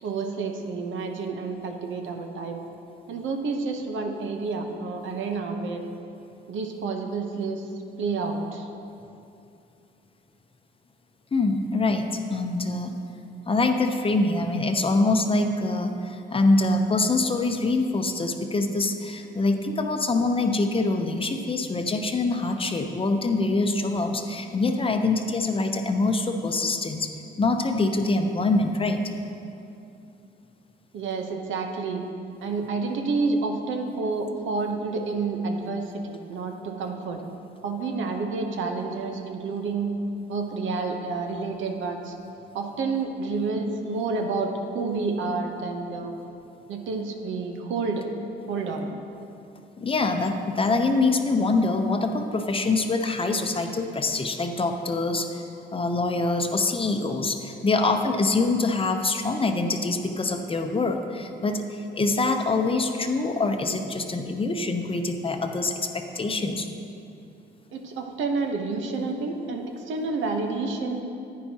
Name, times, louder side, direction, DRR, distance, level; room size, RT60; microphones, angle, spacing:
voice 1, 0.0-2.6 3.1-5.8 6.5-7.7 8.0-8.7 30.9-32.0 32.4-37.2 37.6-39.9 40.3-42.1 42.5-46.1 46.7-48.0 48.5-48.9 67.7-71.0, right 4 dB, 75° right, 4 dB, 0.9 m, -29 dB
voice 2, 11.3-13.0 13.5-27.1 27.4-29.0 49.8-65.9 66.1-66.7, left 3 dB, 25° left, 5 dB, 0.7 m, -24 dB
10.0 x 9.5 x 2.9 m, 2.7 s
cardioid pair, 90°, 20 cm